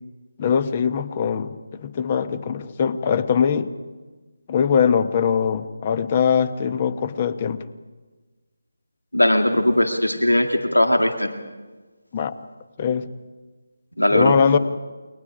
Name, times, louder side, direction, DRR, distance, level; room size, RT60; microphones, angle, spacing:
voice 1, 0.4-3.7 4.5-7.6 12.1-12.3 12.8-13.1 14.1-14.6, left 7 dB, 30° left, 13 dB, 1.1 m, -21 dB
voice 2, 9.1-11.3 14.0-14.4, left 1 dB, 90° left, 5 dB, 2.1 m, -19 dB
29.0 x 23.5 x 5.0 m, 1.3 s
figure-of-eight pair, 155°, 0 cm